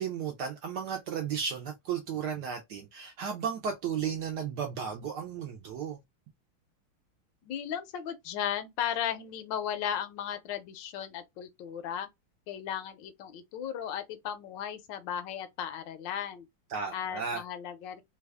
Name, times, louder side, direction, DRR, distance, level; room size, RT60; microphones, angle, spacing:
voice 1, 0.0-6.0 16.7-17.4, right 7 dB, 75° right, 0.9 m, -34 dB
voice 2, 7.5-12.1 12.5-16.5 16.9-18.0, left 9 dB, 75° left, 1.1 m, -36 dB
3.3 x 2.3 x 3.3 m
omnidirectional pair, 2.3 m